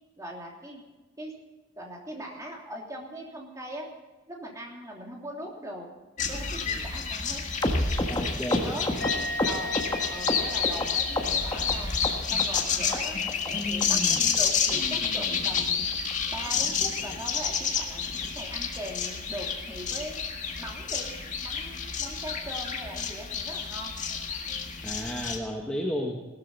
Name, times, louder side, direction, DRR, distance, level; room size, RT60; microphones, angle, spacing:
voice 1, 0.2-0.8 1.2-1.3 1.8-3.9 4.3-5.9 6.2-7.4 8.6-9.8 10.1-15.9 16.3-18.1 18.3-20.2 20.6-21.1 21.4-23.9, equal, 15° right, -1 dB, 3.0 m, -40 dB
sound 1, 6.2-25.4, left 6 dB, 40° left, 1.9 m, -30 dB
sound 2, 7.6-10.9 11.1-11.7 12.0-12.6 12.9-13.0 13.3-13.5 13.8-13.9 14.2-14.4 14.7-14.8 15.0-15.2 15.6-15.7 15.9-16.1 16.4-16.5 16.8-17.0 17.3-17.4, left 1 dB, 20° left, 1.4 m, -29 dB
voice 2, 8.1-9.1 24.8-26.2, equal, 5° left, -1 dB, 1.4 m, -33 dB
Musical instrument, 9.0-12.4 12.7-13.1, left 1 dB, 65° left, 3.6 m, -38 dB
17.5 x 13.0 x 5.5 m, 1.2 s
head